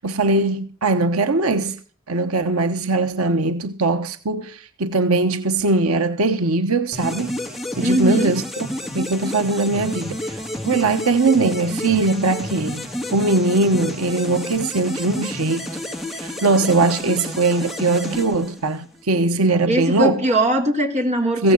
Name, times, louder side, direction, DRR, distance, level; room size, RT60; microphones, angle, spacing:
voice 1, 0.0-1.8 2.1-7.3 7.8-8.7 8.9-15.8 16.2-20.2 21.4-21.5, right 3 dB, 80° right, 1.2 m, -20 dB
sound 1, 6.9-19.0, left 1 dB, ahead, 2.8 m, -30 dB
voice 2, 7.8-8.3 19.7-21.5, right 1 dB, 35° right, 3.5 m, -20 dB
16.0 x 15.0 x 4.0 m
head